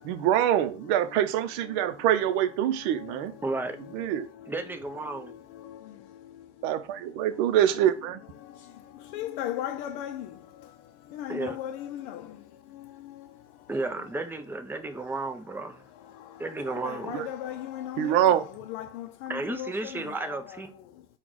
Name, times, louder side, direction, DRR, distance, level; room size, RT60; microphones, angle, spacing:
voice 1, 0.0-3.3 3.9-4.3 6.6-8.2 17.1-17.3 18.0-18.4, right 11 dB, 65° right, 0.7 m, -25 dB
voice 2, 2.8-4.5 5.1-6.7 7.1-7.3 8.4-14.0 14.9-15.1 15.9-20.6 20.9-21.1, left 11 dB, 65° left, 0.5 m, -40 dB
voice 3, 3.4-3.8 4.5-5.4 11.3-11.6 13.7-15.8 16.4-17.1 19.3-20.7, right 2 dB, 5° right, 0.5 m, -33 dB
4.6 x 2.4 x 3.8 m
hypercardioid pair, 100°, 35 cm